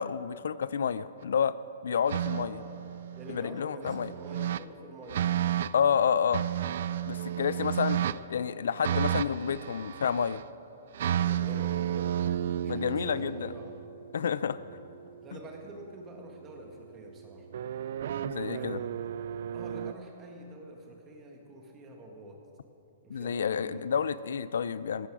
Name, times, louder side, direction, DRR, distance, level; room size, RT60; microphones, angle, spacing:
voice 1, 0.0-1.5 1.8-2.6 3.3-4.1 5.7-6.4 7.1-8.0 8.3-10.4 12.7-13.5 14.1-14.6 18.2-18.8 23.1-25.1, left 7 dB, 80° left, 16 dB, 0.4 m, -29 dB
sound 1, 2.1-3.4 3.9-4.6 5.1-5.7 6.3-8.2 8.8-10.4 10.9-15.1 17.5-19.9, right 10 dB, 55° right, 0.3 m, -32 dB
voice 2, 2.2-2.9 3.1-5.3 7.8-8.2 8.6-9.2 11.1-12.3 12.6-13.8 14.4-14.7 15.2-17.5 18.5-18.9 19.5-22.4 23.0-23.8, right 1 dB, 15° right, 1 dB, 1.6 m, -46 dB
15.0 x 13.0 x 4.9 m, 3.0 s
hypercardioid pair, 165°, 0 cm